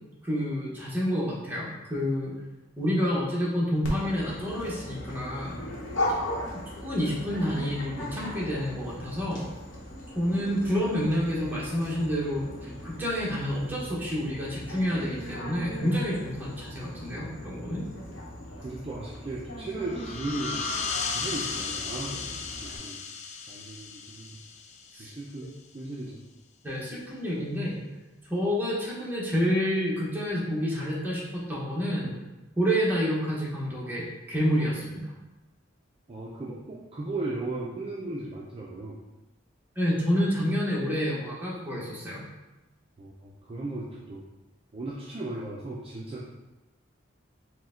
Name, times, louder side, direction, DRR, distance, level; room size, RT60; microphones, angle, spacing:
voice 1, 0.2-2.3 2.8-5.6 6.8-9.5 10.1-17.8 24.9-25.1 26.6-27.8 28.3-32.1 32.6-35.1 39.8-42.3, equal, 10° right, -6 dB, 1.0 m, -28 dB
Dog, 3.8-22.8, left 1 dB, 75° left, 0.9 m, -38 dB
voice 2, 18.6-20.6 21.1-23.0 23.5-24.4 25.0-26.2 36.1-39.0 43.0-44.2 44.7-46.3, right 2 dB, 30° right, -5 dB, 0.4 m, -36 dB
sound 1, 19.9-25.2, left 5 dB, 35° left, 0.3 m, -35 dB
4.5 x 2.2 x 3.6 m, 1.0 s
head